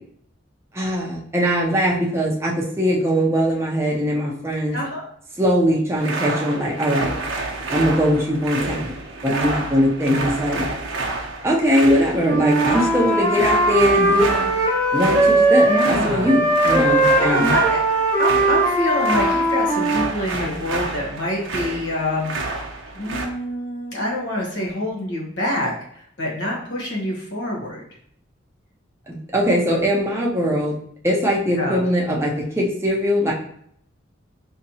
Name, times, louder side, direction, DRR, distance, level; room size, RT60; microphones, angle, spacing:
voice 1, 0.7-4.8 5.4-7.1 7.7-8.9 9.2-10.7 11.4-14.5 14.9-17.5 29.1-30.7 31.0-33.3, equal, 15° right, -2 dB, 0.6 m, -21 dB
voice 2, 4.7-5.0 10.1-10.4 15.7-16.3 17.2-17.8 18.2-22.3 22.9-27.8 31.5-31.8, left 1 dB, 65° left, -2 dB, 1.1 m, -26 dB
sound 1, 6.0-23.3, right 2 dB, 75° right, 0.7 m, -29 dB
Wind instrument woodwind instrument, 12.2-15.9 16.2-20.1, right 2 dB, 10° left, 0.9 m, -19 dB
4.1 x 2.8 x 2.7 m, 0.66 s
head